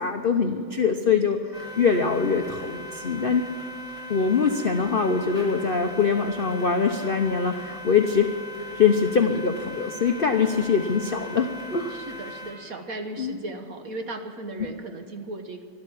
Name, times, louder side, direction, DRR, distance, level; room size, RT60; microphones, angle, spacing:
voice 1, 0.0-3.4 4.1-8.3 8.7-11.9 13.2-13.4, left 5 dB, 60° left, 5 dB, 0.5 m, -23 dB
sound 1, 1.5-12.5, left 1 dB, ahead, 5.4 m, -39 dB
voice 2, 11.9-15.6, right 2 dB, 50° right, 5 dB, 1.4 m, -36 dB
12.5 x 12.5 x 8.5 m, 2.3 s
omnidirectional pair, 2.1 m